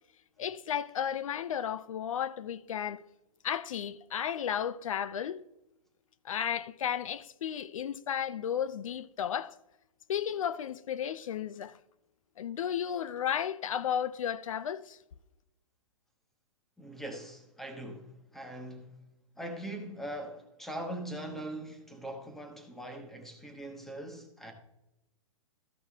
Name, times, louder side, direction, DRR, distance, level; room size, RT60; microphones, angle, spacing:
voice 1, 0.4-3.0 3.4-5.4 6.2-9.5 10.1-11.8 12.4-15.0, left 9 dB, 70° left, 0.5 m, -33 dB
voice 2, 16.8-19.0 19.4-24.5, right 1 dB, ahead, 1.0 m, -41 dB
14.0 x 5.6 x 3.5 m
hypercardioid pair, 155°, 17 cm